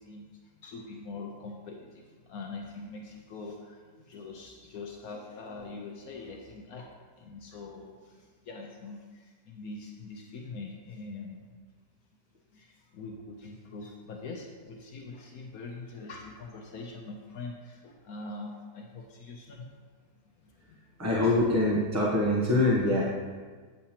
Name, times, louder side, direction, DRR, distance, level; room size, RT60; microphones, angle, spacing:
voice 1, 0.0-11.5 12.5-19.9 20.4-21.0, left 3 dB, 70° left, 1 dB, 1.1 m, -43 dB
voice 2, 21.0-23.0, left 2 dB, 15° right, -5 dB, 0.6 m, -24 dB
8.5 x 6.6 x 2.9 m, 1.5 s
omnidirectional pair, 1.7 m